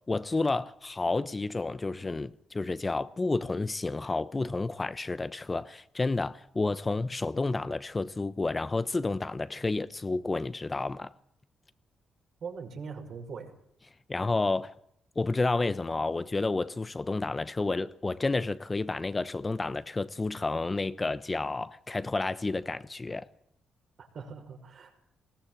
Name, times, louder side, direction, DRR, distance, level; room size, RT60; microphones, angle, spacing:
voice 1, 0.1-11.1 14.1-14.7 15.2-23.3, left 3 dB, 30° left, 1.0 m, -30 dB
voice 2, 12.4-13.5 24.0-25.0, right 5 dB, 65° right, 5.7 m, -41 dB
21.0 x 17.0 x 7.6 m
supercardioid pair, 55°, 0 cm